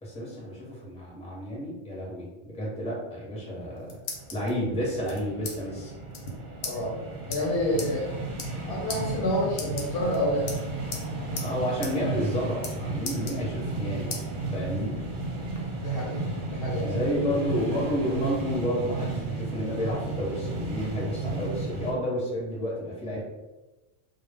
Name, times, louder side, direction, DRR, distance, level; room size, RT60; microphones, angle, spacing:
voice 1, 0.0-4.0 4.3-5.9 11.4-14.3 14.5-15.0 16.8-23.2, equal, 5° left, -5 dB, 0.6 m, -31 dB
sound 1, 3.5-4.5 5.1-5.6 5.8-5.9 6.1-6.3 6.6-6.8 7.3-7.4 7.8-7.9 8.3-8.6 8.9-9.0 9.5-10.2 10.5-11.1 11.4-11.5 11.8-11.9 12.2-12.7 13.0-13.8 14.1-14.2 14.7-15.6, left 4 dB, 90° left, 0.9 m, -37 dB
sound 2, 4.1-21.9, right 2 dB, 55° right, 0.6 m, -34 dB
voice 2, 6.6-6.9 7.3-8.1 8.7-10.5 15.5-16.2 16.5-17.0, left 1 dB, 65° left, -3 dB, 0.7 m, -28 dB
2.1 x 2.0 x 3.3 m, 1.1 s
omnidirectional pair, 1.2 m